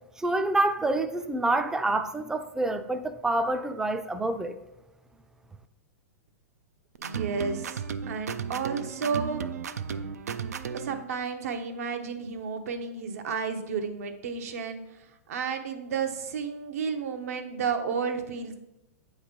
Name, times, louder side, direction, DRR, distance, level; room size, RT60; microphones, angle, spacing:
voice 1, 0.2-4.5, right 2 dB, 5° right, 0.4 m, -27 dB
sound 1, 6.9-11.0, right 7 dB, 90° right, 0.4 m, -34 dB
voice 2, 7.0-9.4 10.7-14.8 15.3-18.5, right 5 dB, 70° right, 0.8 m, -32 dB
7.8 x 3.2 x 5.1 m
hypercardioid pair, 120°, 8 cm